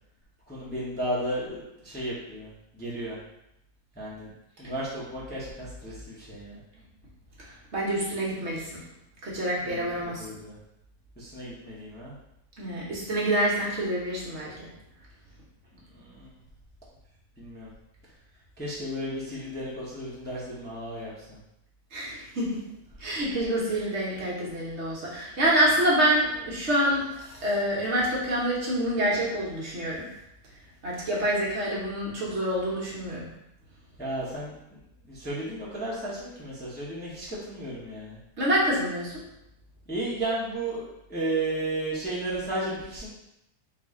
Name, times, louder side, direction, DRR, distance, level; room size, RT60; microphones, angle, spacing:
voice 1, 0.5-3.2 4.0-4.3 4.6-6.6 9.6-10.6 11.2-12.1 15.9-16.3 17.4-17.7 18.6-21.4 34.0-34.5 35.1-38.2 39.9-43.1, right 1 dB, 10° left, -7 dB, 0.6 m, -34 dB
voice 2, 7.7-8.8 9.2-10.2 12.6-14.7 21.9-22.6 23.0-30.0 30.8-33.3 38.4-39.2, right 1 dB, 45° right, -5 dB, 1.2 m, -27 dB
4.0 x 2.7 x 3.6 m, 0.84 s
omnidirectional pair, 1.8 m